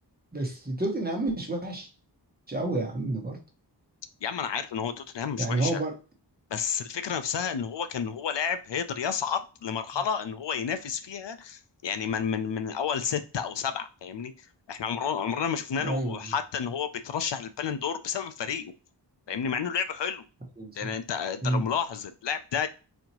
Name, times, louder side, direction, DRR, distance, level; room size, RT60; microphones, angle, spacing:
voice 1, 0.3-1.9 2.5-3.4 5.4-5.9 15.8-16.3 20.6-20.9 21.4-21.6, right 2 dB, 20° right, 1.3 m, -29 dB
voice 2, 4.2-5.8 6.5-18.7 19.3-20.2 20.8-22.7, left 7 dB, 80° left, 0.5 m, -31 dB
4.2 x 2.8 x 2.9 m
wide cardioid pair, 80°, 42 cm